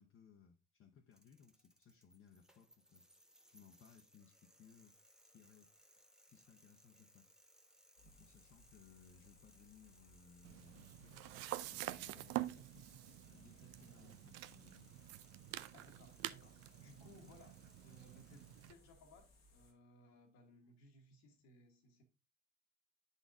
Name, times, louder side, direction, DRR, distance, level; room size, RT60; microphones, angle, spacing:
voice 1, 0.0-3.0 3.5-5.0 5.2-5.7 6.3-7.3 8.0-12.4 13.3-14.9, left 7 dB, 45° left, 2 dB, 0.9 m, -64 dB
sound 1, 1.1-18.7, equal, ahead, 1.0 m, -69 dB
sound 2, 8.0-19.7, left 1 dB, 85° left, 1.1 m, -67 dB
sound 3, 10.4-18.7, right 16 dB, 60° right, 0.5 m, -47 dB
voice 2, 12.0-13.2 15.7-22.0, equal, 65° left, 4 dB, 1.3 m, -63 dB
8.1 x 4.1 x 3.6 m, 0.29 s
figure-of-eight pair, 50°, 29 cm